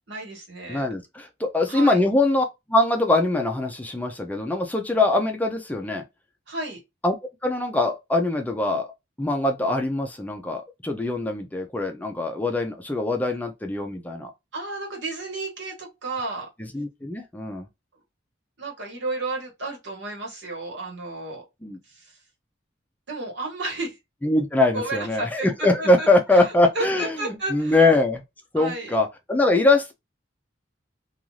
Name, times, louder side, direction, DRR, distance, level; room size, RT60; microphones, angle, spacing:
voice 1, 0.1-0.9 1.7-2.0 6.5-6.8 14.5-16.5 18.6-21.4 21.9-22.1 23.1-24.0 24.7-25.5 25.8-26.1 26.7-27.8 28.5-29.0, right 2 dB, 70° right, 1.3 m, -32 dB
voice 2, 0.7-6.0 7.0-7.2 7.4-8.9 9.2-14.3 16.7-17.7 21.6-21.8 24.2-28.2 28.5-29.9, left 2 dB, 10° left, 0.4 m, -22 dB
2.5 x 2.4 x 3.0 m
head